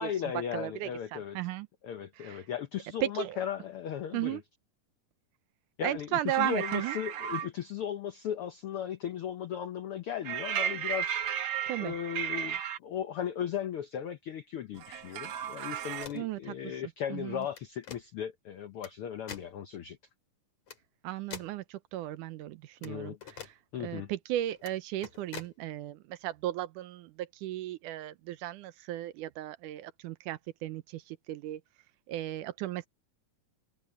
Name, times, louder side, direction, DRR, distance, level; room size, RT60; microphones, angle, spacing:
voice 1, 0.0-1.4 1.8-4.4 5.8-11.2 11.8-20.0 22.8-23.2 23.7-24.1, left 9 dB, 80° left, 1.2 m, -36 dB
voice 2, 0.5-1.7 2.2-2.4 3.0-3.4 4.1-4.4 5.8-7.0 11.7-11.9 16.1-16.4 17.1-17.5 21.0-23.5 23.8-31.6 32.1-32.9, right 14 dB, 80° right, 2.3 m, -35 dB
sound 1, 6.3-7.5 10.2-12.8 14.8-16.1, right 9 dB, 60° right, 1.7 m, -34 dB
sound 2, 15.9-16.3 17.4-18.0 18.8-18.9 19.3-19.5 20.7-20.8 21.3-21.6 22.8-22.9 23.2-23.5 24.6-24.7 25.0-25.5, left 7 dB, 55° left, 3.9 m, -45 dB
omnidirectional pair, 3.7 m